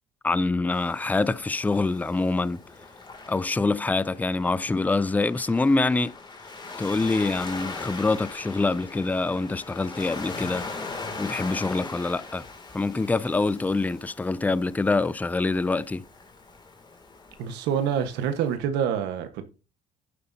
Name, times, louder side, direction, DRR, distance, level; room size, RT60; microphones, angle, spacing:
voice 1, 0.2-2.6 3.3-6.1 6.8-10.6 11.2-12.4 12.7-16.0, left 3 dB, 10° left, 0.4 m, -25 dB
Waves surf, 0.7-18.6, left 3 dB, 25° left, 2.6 m, -40 dB
voice 2, 17.4-19.5, right 8 dB, 90° right, 1.4 m, -26 dB
11.0 x 9.3 x 2.8 m
cardioid pair, 110°, 17 cm